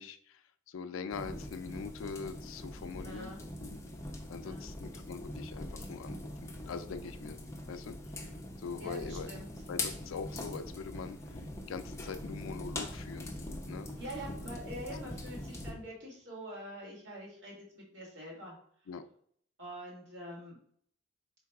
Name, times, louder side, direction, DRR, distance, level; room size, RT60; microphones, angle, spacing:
voice 1, 0.0-3.3 3.6-3.8 4.3-7.4 7.7-8.0 8.6-9.3 9.7-13.3 13.7-13.9 18.9-19.0, left 5 dB, 75° left, 10 dB, 0.4 m, -43 dB
sound 1, 1.1-15.7, left 1 dB, 15° left, 0.5 m, -42 dB
voice 2, 3.0-3.4 4.4-4.7 8.8-9.5 14.0-18.6 19.6-20.6, equal, 60° right, -3 dB, 1.7 m, -45 dB
3.9 x 2.3 x 4.5 m, 0.63 s
head